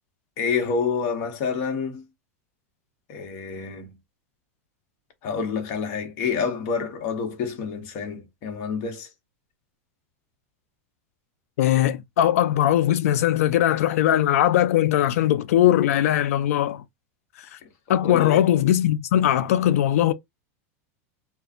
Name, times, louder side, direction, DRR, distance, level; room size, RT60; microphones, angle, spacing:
voice 1, 0.4-2.0 3.1-4.0 5.2-9.1 18.0-18.4, left 5 dB, 50° left, 1.0 m, -28 dB
voice 2, 11.6-16.8 17.9-20.1, left 12 dB, 80° left, 0.4 m, -20 dB
2.5 x 2.3 x 2.4 m
supercardioid pair, 125°, 8 cm